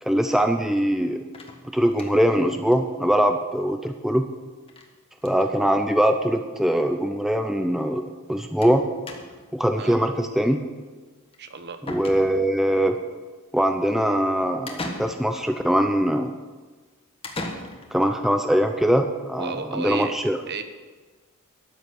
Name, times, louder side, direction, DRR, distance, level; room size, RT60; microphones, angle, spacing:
voice 1, 0.0-1.2 1.6-4.3 5.2-8.0 8.3-8.8 9.5-10.6 11.9-13.0 13.5-16.3 17.9-20.4, equal, ahead, 6 dB, 0.6 m, -22 dB
sound 1, 1.3-2.4 2.7-2.8 3.1-3.2 3.4-3.5 4.7-4.9 5.2-5.5 6.4-6.5 6.8-6.9 8.6-8.8 9.1-9.5 11.3-11.4 11.9-12.6 14.7-15.5 17.2-18.1, left 2 dB, 25° left, 1.4 m, -37 dB
voice 2, 11.4-11.8 19.4-20.1 20.5-20.6, right 4 dB, 50° right, 8 dB, 1.1 m, -32 dB
13.0 x 7.1 x 9.2 m, 1.4 s
head